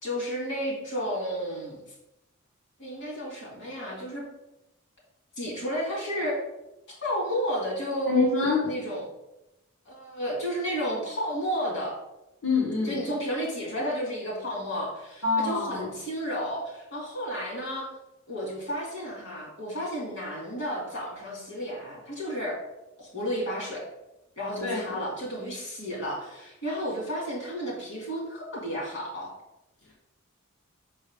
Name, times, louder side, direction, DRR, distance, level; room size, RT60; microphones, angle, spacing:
voice 1, 0.0-1.8 2.8-4.2 5.4-6.4 6.9-8.3 8.6-9.0 9.9-12.0 12.8-17.9 18.3-22.6 23.0-23.8 24.4-29.3, equal, 55° left, -3 dB, 2.5 m, -32 dB
voice 2, 8.1-8.6 12.4-13.0 15.2-15.9 24.6-25.0, left 4 dB, 75° left, -6 dB, 1.2 m, -26 dB
5.8 x 5.4 x 3.6 m, 0.90 s
head